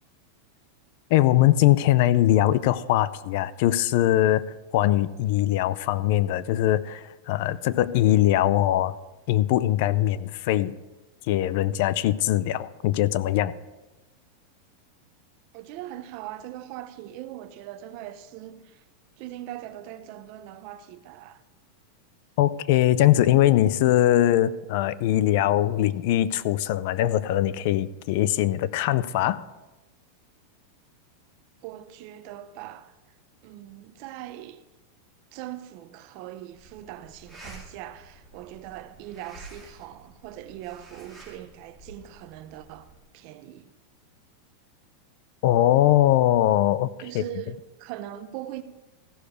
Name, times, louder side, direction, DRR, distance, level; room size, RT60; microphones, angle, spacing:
voice 1, 1.1-4.4 4.7-8.9 9.3-10.7 11.3-13.5 22.4-29.4 45.4-46.9 47.1-47.2, left 13 dB, 55° left, 0.4 m, -21 dB
voice 2, 15.5-18.8 19.2-21.4 31.6-32.9 33.4-34.6 35.3-42.9 43.1-43.7 47.0-48.6, right 13 dB, 50° right, 0.7 m, -41 dB
sound 1, 36.5-43.0, right 2 dB, 5° left, 3.0 m, -49 dB
15.0 x 6.7 x 5.0 m
supercardioid pair, 150°, 0 cm